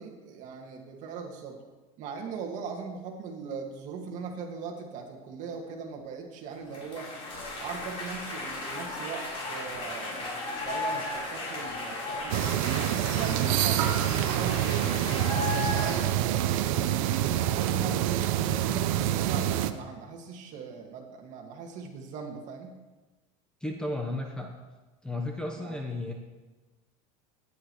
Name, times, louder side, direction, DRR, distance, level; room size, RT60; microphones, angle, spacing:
voice 1, 0.0-1.6 2.0-7.1 7.6-12.5 12.9-17.0 17.4-22.8 25.6-25.8, right 5 dB, 45° right, 1 dB, 1.9 m, -39 dB
sound 1, 6.7-16.0, left 2 dB, 35° left, 4.0 m, -35 dB
sound 2, 12.3-19.7, right 12 dB, 75° right, 0.7 m, -27 dB
voice 2, 23.6-24.5 25.0-26.1, left 2 dB, 5° left, 1 dB, 1.0 m, -33 dB
14.0 x 10.0 x 3.1 m, 1.2 s
supercardioid pair, 135°, 17 cm